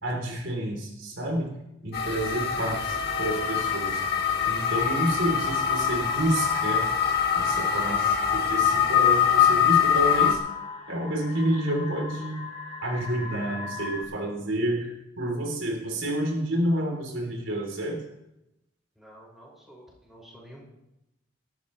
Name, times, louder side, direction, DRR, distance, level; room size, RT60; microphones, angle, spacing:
voice 1, 0.0-1.5 1.8-4.0 4.4-6.8 7.3-10.4 10.9-12.4 12.8-18.0, right 1 dB, 80° right, 1 dB, 3.2 m, -29 dB
sound 1, 1.9-10.4, left 8 dB, 55° left, 2.0 m, -24 dB
sound 2, 2.1-14.0, left 2 dB, 35° left, 3.8 m, -40 dB
voice 2, 19.0-20.6, equal, ahead, -5 dB, 5.5 m, -50 dB
19.0 x 13.0 x 3.2 m, 0.89 s
head